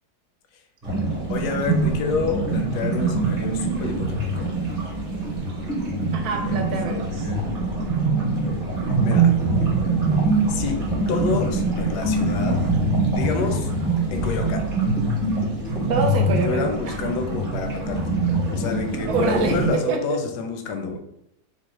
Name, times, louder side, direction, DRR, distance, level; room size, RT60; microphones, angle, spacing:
sound 1, 0.8-19.7, right 2 dB, 30° right, 1.0 m, -23 dB
voice 1, 1.3-4.5 6.4-6.6 7.1-7.4 9.0-9.3 10.5-10.8 11.1-12.6 13.1-13.7 14.1-14.6 16.4-18.0 18.5-21.0, left 5 dB, 85° left, 5 dB, 1.2 m, -28 dB
voice 2, 6.1-7.3 15.9-17.1 19.1-20.2, right 3 dB, 75° right, 3 dB, 1.1 m, -26 dB
3.8 x 2.1 x 3.0 m, 0.79 s
omnidirectional pair, 1.7 m